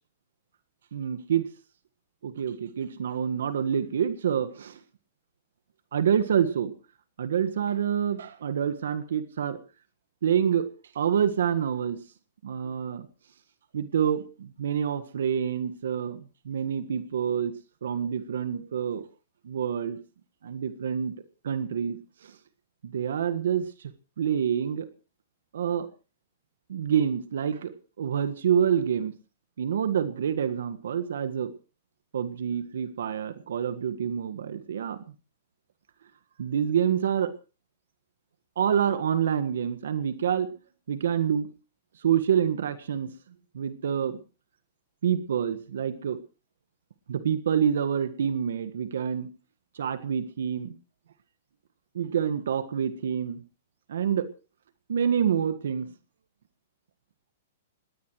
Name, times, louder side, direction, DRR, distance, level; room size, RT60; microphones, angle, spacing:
voice 1, 0.9-1.5 2.2-4.8 5.9-6.7 7.2-9.6 10.2-10.7 10.9-12.0 12.4-13.1 13.7-17.5 17.8-19.0 19.4-20.0 20.4-21.1 21.4-22.0 22.2-22.3 22.8-23.7 24.2-24.9 25.5-25.9 26.7-29.1 29.6-31.5 32.1-35.0 36.4-37.3 38.6-40.5 40.9-41.5 42.0-43.1 43.5-44.2 45.0-46.2 47.1-49.3 49.7-50.7 51.9-53.4 53.9-54.3 54.9-55.9, right 8 dB, 75° right, 11 dB, 1.6 m, -27 dB
19.0 x 19.0 x 3.2 m, 0.33 s
hypercardioid pair, 125°, 0 cm